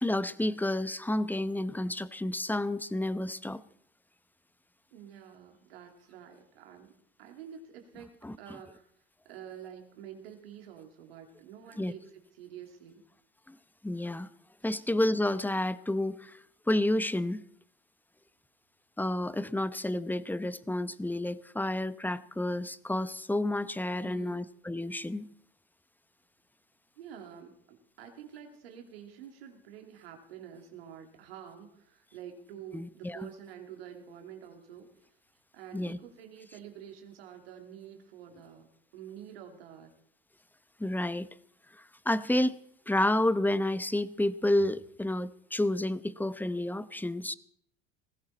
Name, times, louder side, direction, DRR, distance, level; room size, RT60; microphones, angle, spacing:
voice 1, 0.0-3.6 8.2-8.3 11.8-11.9 13.5-13.6 13.8-14.3 14.6-16.4 16.7-17.4 19.0-25.3 32.7-33.2 35.7-36.0 40.8-41.3 42.0-42.6 42.9-47.3, left 1 dB, 5° left, 15 dB, 0.8 m, -30 dB
voice 2, 4.9-8.1 8.4-8.9 9.2-13.0 14.6-14.8 23.9-24.5 27.0-34.9 35.5-39.9, right 9 dB, 90° right, 3 dB, 2.9 m, -48 dB
19.5 x 16.0 x 4.2 m, 0.67 s
hypercardioid pair, 85°, 29 cm